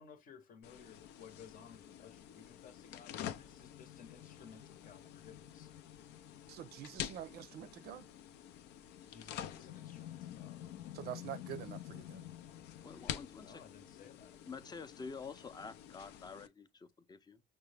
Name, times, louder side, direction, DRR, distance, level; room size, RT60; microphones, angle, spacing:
voice 1, 0.0-5.7 9.1-10.6 13.4-14.3, left 7 dB, 55° left, 0.9 m, -57 dB
sound 1, 0.6-16.5, left 10 dB, 85° left, 0.5 m, -48 dB
voice 2, 6.5-8.1 10.9-12.2, right 10 dB, 70° right, 0.5 m, -46 dB
voice 3, 12.8-13.6 14.5-17.4, left 5 dB, 25° left, 0.5 m, -48 dB
5.8 x 2.1 x 3.2 m
cardioid pair, 110°, 17 cm